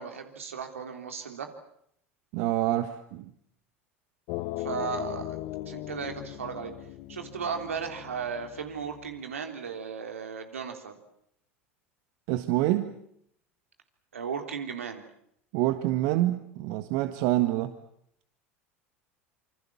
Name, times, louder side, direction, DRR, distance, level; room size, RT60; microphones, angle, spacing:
voice 1, 0.0-1.5 4.6-5.4 5.7-6.7 7.1-11.0 14.1-15.0, right 6 dB, 80° right, 5 dB, 3.6 m, -35 dB
voice 2, 2.3-3.3 12.3-12.9 15.5-17.7, right 15 dB, 55° right, 9 dB, 1.6 m, -26 dB
sound 1, 4.3-9.2, left 16 dB, 55° left, 1.4 m, -39 dB
27.0 x 26.0 x 7.3 m, 0.72 s
figure-of-eight pair, 75°, 7 cm